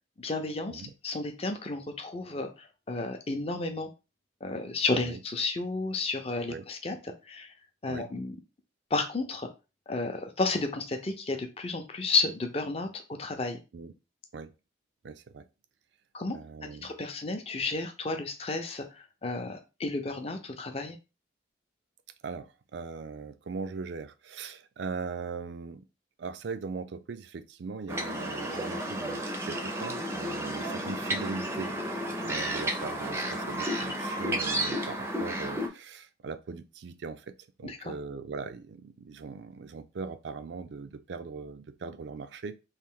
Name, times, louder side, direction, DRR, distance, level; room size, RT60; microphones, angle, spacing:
voice 1, 0.2-3.9 4.4-7.0 7.3-7.5 7.8-8.4 8.9-9.5 9.9-13.6 16.1-16.4 16.8-21.0 37.6-37.9, left 3 dB, 30° left, 0.5 m, -32 dB
voice 2, 15.0-15.4 16.3-16.9 22.2-25.8 26.2-31.7 32.2-37.3 37.6-42.6, right 4 dB, 70° right, 0.4 m, -39 dB
sound 1, 27.9-35.7, equal, 15° right, 0.5 m, -32 dB
3.2 x 2.5 x 3.6 m
head